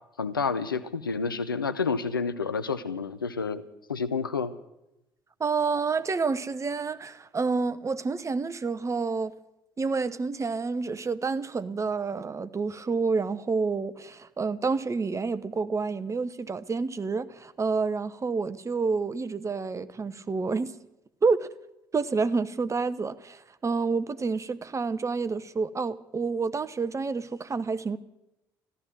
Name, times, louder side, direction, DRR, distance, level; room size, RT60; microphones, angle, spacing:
voice 1, 0.2-3.6 3.9-4.5, left 5 dB, 85° left, 0.6 m, -29 dB
voice 2, 5.4-9.3 9.8-20.7 21.2-21.5 21.9-28.0, right 4 dB, 25° right, 0.9 m, -29 dB
14.0 x 12.5 x 7.6 m
figure-of-eight pair, 45°, 11 cm